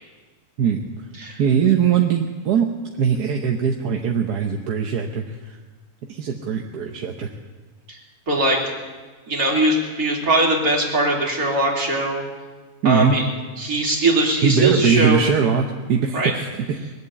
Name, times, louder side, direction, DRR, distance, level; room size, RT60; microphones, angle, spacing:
voice 1, 1.4-2.7 3.0-5.6 6.1-7.3 12.8-13.2 14.4-16.8, right 7 dB, 90° right, 2 dB, 1.5 m, -21 dB
voice 2, 8.3-8.6 9.3-12.3 12.8-13.2 13.6-15.2 16.1-16.3, right 2 dB, 65° right, -2 dB, 3.3 m, -20 dB
21.0 x 8.2 x 8.4 m, 1.3 s
omnidirectional pair, 1.6 m